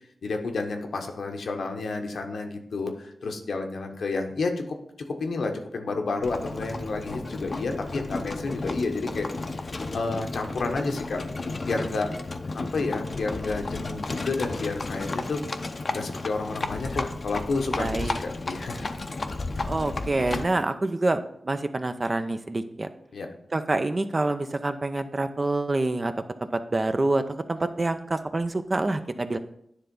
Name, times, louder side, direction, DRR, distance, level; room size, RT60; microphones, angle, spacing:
voice 1, 0.2-4.8 5.2-9.3 9.9-11.2 11.6-12.1 12.5-15.4 15.9-18.8 23.1-23.3, left 3 dB, 85° left, 4 dB, 0.9 m, -30 dB
Livestock farm animals working animals, 6.2-20.6, left 3 dB, 50° left, 0.6 m, -33 dB
voice 2, 17.8-18.2 19.6-21.2 21.4-22.9 23.5-26.1 26.5-29.4, right 2 dB, 40° right, 9 dB, 0.6 m, -26 dB
9.8 x 3.4 x 5.2 m, 0.73 s
cardioid pair, 60°, 0 cm